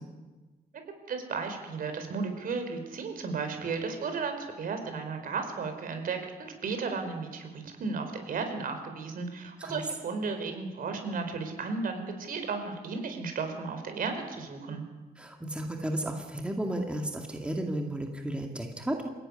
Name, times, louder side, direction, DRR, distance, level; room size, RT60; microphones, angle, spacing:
voice 1, 1.1-14.8, right 4 dB, 60° right, 6 dB, 4.7 m, -34 dB
voice 2, 15.2-19.1, right 1 dB, 5° right, 2 dB, 2.1 m, -33 dB
27.0 x 16.0 x 9.8 m, 1.2 s
wide cardioid pair, 175°, 16 cm